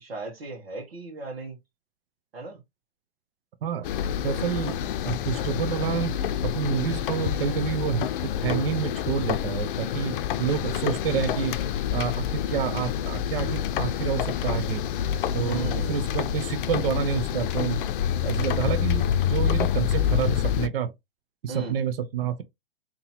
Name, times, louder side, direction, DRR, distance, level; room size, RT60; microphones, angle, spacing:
voice 1, 0.0-1.6 2.3-2.6 15.4-16.0 21.5-21.8, right 3 dB, 90° right, 1.4 m, -36 dB
sound 1, 3.8-20.7, left 9 dB, 60° left, 0.6 m, -27 dB
voice 2, 4.2-4.8 5.0-6.2 6.4-11.6 11.9-14.8 15.3-17.8 18.2-20.9 21.4-22.4, right 8 dB, 70° right, 0.7 m, -28 dB
3.8 x 2.9 x 2.8 m
hypercardioid pair, 115°, 30 cm